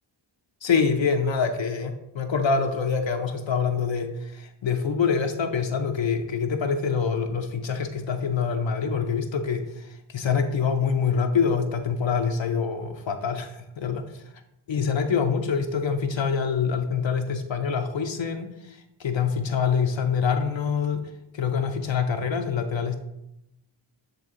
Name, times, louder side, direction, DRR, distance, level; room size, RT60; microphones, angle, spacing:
voice 1, 0.6-14.2 14.7-23.0, left 6 dB, 70° left, 4 dB, 0.6 m, -25 dB
7.9 x 3.4 x 3.6 m, 0.84 s
wide cardioid pair, 70°, 48 cm